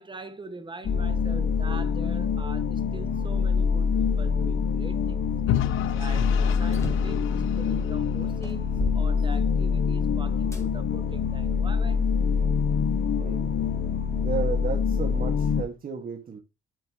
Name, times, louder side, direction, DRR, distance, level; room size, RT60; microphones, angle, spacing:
voice 1, 0.0-5.3 5.9-12.0, right 3 dB, 25° right, 1.6 m, -43 dB
sound 1, 0.8-15.6, left 6 dB, 60° left, 1.4 m, -25 dB
Vehicle / Engine, 5.5-8.5, left 11 dB, 85° left, 0.8 m, -31 dB
sound 2, 6.7-7.2 7.9-8.0 8.4-9.8 10.5-10.7 11.4-12.4, left 1 dB, 15° left, 3.2 m, -38 dB
voice 2, 13.1-13.5 14.1-16.4, right 5 dB, 45° right, 1.8 m, -33 dB
8.7 x 7.8 x 3.0 m
cardioid pair, 90°, 20 cm